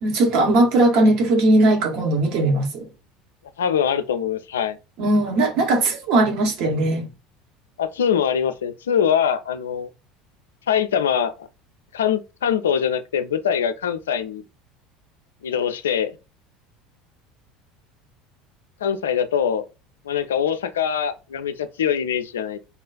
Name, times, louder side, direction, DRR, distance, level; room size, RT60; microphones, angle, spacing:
voice 1, 0.0-2.9 5.0-7.0, right 2 dB, 55° right, 0.9 m, -19 dB
voice 2, 3.6-4.8 7.8-9.9 10.7-11.5 11.9-14.4 15.4-16.1 18.8-19.6 20.1-22.6, left 8 dB, 75° left, 0.3 m, -23 dB
3.6 x 2.3 x 2.2 m
figure-of-eight pair, 70°, 0 cm